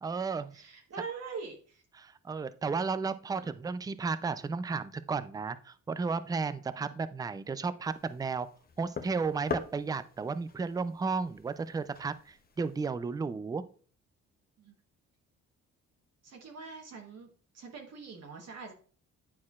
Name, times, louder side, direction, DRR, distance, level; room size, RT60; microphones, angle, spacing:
voice 1, 0.0-0.5 2.0-8.5 8.8-13.6, right 4 dB, 15° right, 13 dB, 0.3 m, -33 dB
voice 2, 0.5-1.8 3.3-3.5 6.8-7.0 14.6-14.7 16.2-18.7, right 5 dB, 55° right, 2 dB, 1.2 m, -44 dB
sound 1, 7.8-12.9, left 5 dB, 30° left, 0.7 m, -43 dB
9.6 x 4.3 x 2.4 m, 0.43 s
cardioid pair, 90°, 30 cm